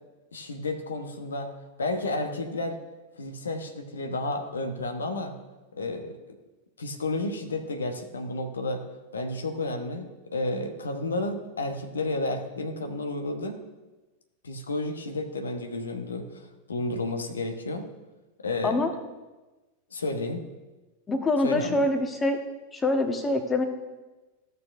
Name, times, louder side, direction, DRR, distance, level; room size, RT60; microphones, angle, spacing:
voice 1, 0.3-1.5 1.8-2.8 3.2-5.3 5.7-6.2 6.8-8.8 9.1-13.6 14.4-17.9 18.4-18.9 19.9-20.4 21.4-21.8, left 2 dB, 70° left, 6 dB, 1.0 m, -31 dB
voice 2, 21.1-22.4 22.7-23.7, left 2 dB, 15° left, 6 dB, 1.2 m, -25 dB
15.5 x 6.7 x 2.6 m, 1.1 s
figure-of-eight pair, 90°, 0 cm